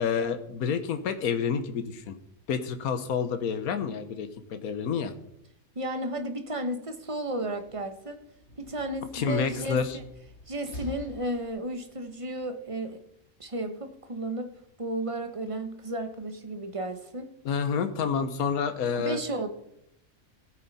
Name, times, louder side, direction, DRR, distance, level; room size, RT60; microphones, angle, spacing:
voice 1, 0.0-2.2 2.5-5.1 9.1-10.0 17.4-19.2, left 6 dB, 80° left, 9 dB, 1.5 m, -29 dB
voice 2, 5.7-8.2 8.6-10.0 10.5-13.0 13.4-14.5 14.8-17.3 18.9-19.5, right 1 dB, 25° right, 7 dB, 1.2 m, -33 dB
Slam, 7.3-12.0, left 1 dB, 50° left, 2.9 m, -47 dB
16.0 x 9.3 x 4.2 m, 0.79 s
omnidirectional pair, 1.5 m